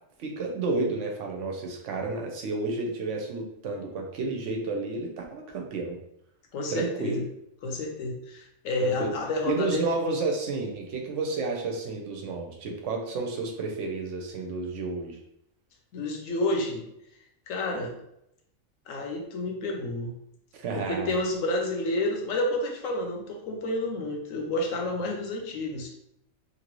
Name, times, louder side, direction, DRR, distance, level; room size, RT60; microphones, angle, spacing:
voice 1, 0.2-6.0 6.7-7.2 8.8-9.1 9.4-15.2 20.5-21.1, right 3 dB, 70° right, 2 dB, 0.9 m, -31 dB
voice 2, 6.5-7.2 7.6-9.9 15.9-16.8 17.5-17.9 18.9-20.1 20.7-25.9, left 2 dB, 75° left, 1 dB, 1.1 m, -30 dB
3.0 x 2.6 x 3.0 m, 0.78 s
omnidirectional pair, 1.4 m